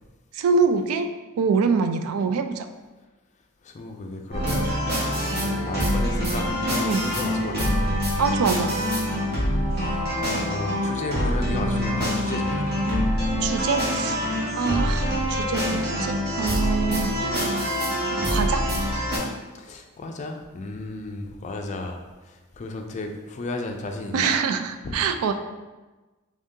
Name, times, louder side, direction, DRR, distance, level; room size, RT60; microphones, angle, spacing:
voice 1, 0.3-1.1 1.4-2.7 6.9-7.1 8.2-8.7 13.4-14.2 14.6-17.1 18.3-18.6 24.1-25.3, right 5 dB, 80° right, 8 dB, 0.3 m, -24 dB
voice 2, 3.6-4.7 5.0-7.7 9.7-12.7 19.5-24.3 24.8-25.0, left 2 dB, 35° left, 4 dB, 0.4 m, -34 dB
sound 1, 4.3-19.2, equal, 50° right, 1.1 m, -25 dB
3.5 x 2.7 x 3.6 m, 1.2 s
head